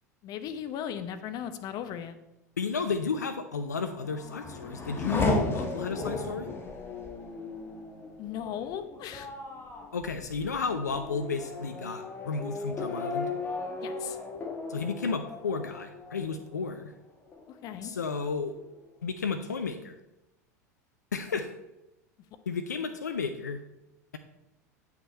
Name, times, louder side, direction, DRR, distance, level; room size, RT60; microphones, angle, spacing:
voice 1, 0.2-2.2 8.2-9.3 13.8-14.2 17.5-17.9, left 9 dB, 45° left, 10 dB, 0.8 m, -37 dB
voice 2, 2.6-6.5 9.9-13.3 14.7-16.9 17.8-18.5 19.0-20.0 21.1-21.5 22.5-23.6, left 5 dB, 85° left, 8 dB, 0.5 m, -32 dB
Race car auto racing / Accelerating revving vroom, 3.7-16.9 17.3-18.0, left 3 dB, 25° left, 1.6 m, -35 dB
8.5 x 5.9 x 4.3 m, 0.93 s
figure-of-eight pair, 80°, 9 cm